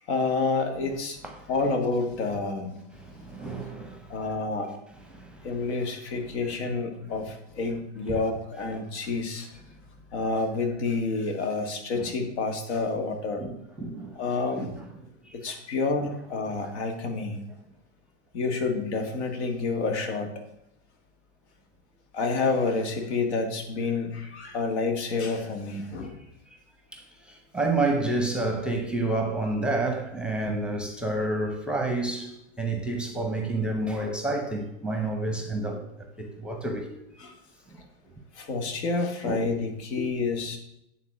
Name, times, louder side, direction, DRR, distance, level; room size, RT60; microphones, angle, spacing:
voice 1, 0.1-1.2 1.5-2.8 4.1-4.7 5.4-9.5 10.1-13.4 14.2-14.7 15.3-17.4 18.3-20.3 22.1-26.2 37.2-37.3 38.3-40.6, left 3 dB, 75° left, 1.8 m, -29 dB
voice 2, 3.0-4.2 5.1-5.5 11.9-12.1 13.4-14.2 14.6-14.7 15.2-15.4 26.9-35.8 36.2-36.9 37.7-37.8 39.2-39.5, right 2 dB, 5° right, 0.8 m, -29 dB
9.1 x 4.0 x 6.0 m
supercardioid pair, 135°, 34 cm